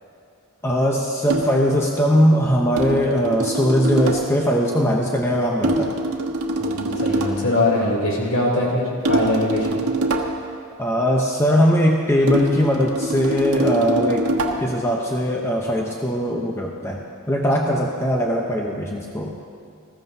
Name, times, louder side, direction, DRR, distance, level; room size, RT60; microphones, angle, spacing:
voice 1, 0.6-5.9 10.8-14.3 14.6-19.4, equal, 10° left, -1 dB, 0.8 m, -20 dB
sound 1, 1.3-1.7 2.8-4.4 5.6-7.5 9.0-10.5 12.3-14.8, right 2 dB, 85° right, 1.2 m, -24 dB
voice 2, 6.6-9.8, left 1 dB, 60° left, -3 dB, 3.4 m, -22 dB
20.0 x 15.0 x 2.7 m, 2.4 s
head